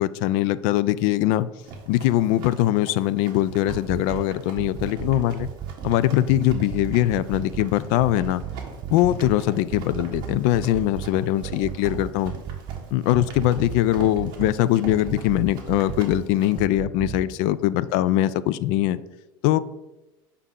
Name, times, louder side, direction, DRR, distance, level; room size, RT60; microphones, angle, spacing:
voice 1, 0.0-1.5 1.9-5.5 5.8-8.4 8.9-12.3 12.9-19.0 19.4-19.6, left 14 dB, 55° left, 16 dB, 0.4 m, -22 dB
Run, 1.6-16.6, right 4 dB, 40° right, 1.4 m, -43 dB
sound 1, 3.5-4.2 4.6-6.0 6.3-7.7 8.0-9.4 9.7-11.1 11.4-12.8 13.1-14.5 14.9-16.2 16.6-17.2, right 9 dB, 25° right, 0.3 m, -33 dB
8.2 x 5.7 x 3.7 m, 1.0 s
cardioid pair, 165°, 11 cm